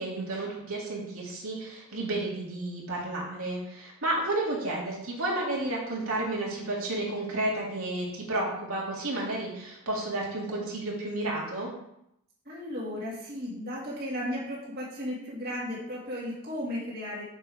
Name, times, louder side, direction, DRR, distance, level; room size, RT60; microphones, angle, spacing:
voice 1, 0.0-11.7, right 2 dB, 85° right, -3 dB, 1.9 m, -31 dB
voice 2, 12.4-17.2, left 1 dB, 45° right, -6 dB, 1.7 m, -35 dB
6.0 x 4.7 x 4.7 m, 0.79 s
head